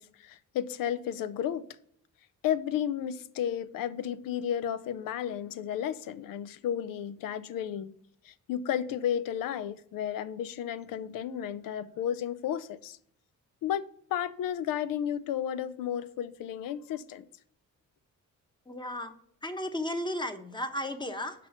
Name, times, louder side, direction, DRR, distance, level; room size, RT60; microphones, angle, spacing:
voice 1, 0.0-1.7 2.4-7.9 8.2-13.0 13.6-17.3, left 9 dB, 85° left, 0.6 m, -33 dB
voice 2, 18.7-19.1 19.4-21.5, left 1 dB, 15° left, 0.9 m, -34 dB
6.0 x 4.5 x 5.7 m
cardioid pair, 80°, 33 cm